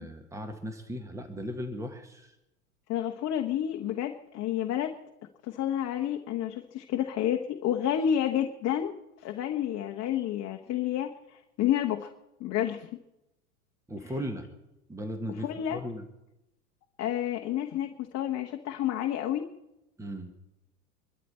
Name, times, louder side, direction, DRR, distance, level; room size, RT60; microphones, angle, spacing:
voice 1, 0.0-2.3 13.9-14.4 14.9-16.0 20.0-20.3, equal, 5° right, 6 dB, 1.6 m, -37 dB
voice 2, 2.9-4.9 5.4-8.9 9.2-12.1 12.4-12.9 15.4-15.8 17.0-19.5, left 10 dB, 35° left, 4 dB, 1.1 m, -30 dB
24.0 x 12.5 x 4.3 m, 0.92 s
hypercardioid pair, 90°, 46 cm